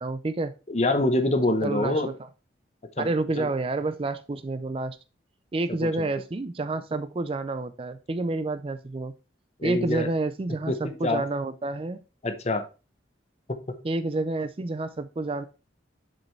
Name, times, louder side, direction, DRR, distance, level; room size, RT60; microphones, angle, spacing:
voice 1, 0.0-0.5 1.6-2.1 3.0-5.0 5.5-9.1 9.6-12.0 13.8-15.5, right 2 dB, 30° right, 12 dB, 0.4 m, -29 dB
voice 2, 0.7-2.1 3.0-3.1 3.4-3.5 5.8-5.9 9.6-10.1 10.7-11.2 12.2-12.6 13.5-13.8, left 2 dB, 35° left, 8 dB, 0.8 m, -25 dB
7.4 x 5.1 x 3.1 m, 0.31 s
head